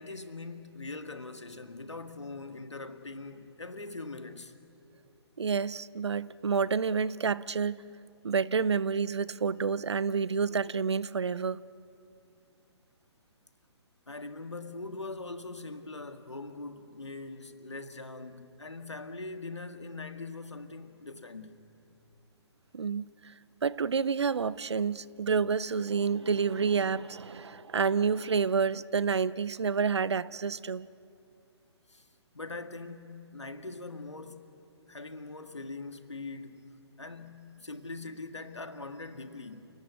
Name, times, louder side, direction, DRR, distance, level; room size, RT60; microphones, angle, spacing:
voice 1, 0.0-4.5 14.1-21.6 31.9-32.1 32.3-34.5 34.9-39.7, left 3 dB, 90° left, 1.9 m, -42 dB
voice 2, 5.4-7.8 8.2-11.6 22.7-23.3 23.6-30.9, right 5 dB, 75° right, 0.7 m, -29 dB
29.5 x 17.5 x 9.7 m
figure-of-eight pair, 135°, 14 cm